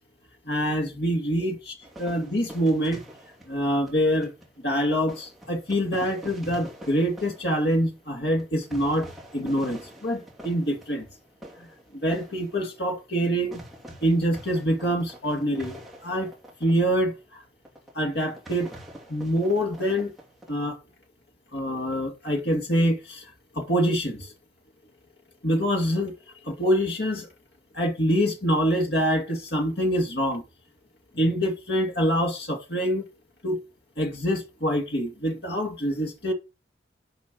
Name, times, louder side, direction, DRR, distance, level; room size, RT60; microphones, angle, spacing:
voice 1, 0.5-3.0 3.5-4.3 4.6-9.1 9.3-11.1 11.9-13.6 14.0-15.7 16.0-16.3 16.6-17.4 17.9-18.7 19.1-20.1 20.5-20.8 21.5-23.2 23.5-24.3 25.4-26.1 26.4-27.3 27.7-30.4 31.1-33.0 33.4-33.6 34.0-36.3, equal, 55° left, 2.4 m, -25 dB
sound 1, 1.8-4.6 5.1-13.3 13.5-16.8 17.2-17.3 17.7-17.9 18.2-20.5, equal, ahead, 2.7 m, -45 dB
9.9 x 5.1 x 5.4 m
head